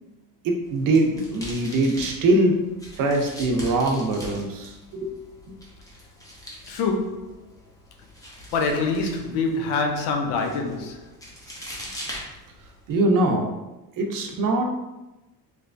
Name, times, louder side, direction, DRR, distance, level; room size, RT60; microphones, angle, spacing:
voice 1, 0.4-2.6 3.0-5.1 5.5-5.6 12.9-13.5 14.0-14.6, right 2 dB, 55° right, 0.6 m, -22 dB
sound 1, 0.6-12.9, equal, 10° left, 0.6 m, -42 dB
voice 2, 6.7-7.3 8.5-11.0, left 3 dB, 90° left, 0.6 m, -25 dB
3.2 x 2.9 x 2.5 m
cardioid pair, 145°, 39 cm